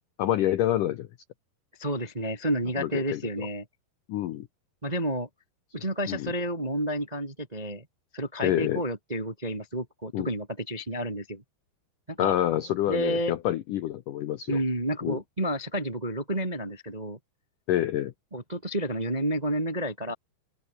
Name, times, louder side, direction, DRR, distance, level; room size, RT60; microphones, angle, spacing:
voice 1, 0.2-1.1 2.8-3.5 4.1-4.5 6.1-6.3 8.4-8.8 10.1-10.3 12.2-14.6 15.0-15.2 17.7-18.1, left 13 dB, 90° left, 1.8 m, -27 dB
voice 2, 1.8-3.6 4.8-5.3 5.7-7.8 8.1-11.4 12.1-12.3 12.9-13.3 14.5-17.2 18.3-20.1, right 1 dB, 25° right, 0.8 m, -30 dB
open air
omnidirectional pair, 5.2 m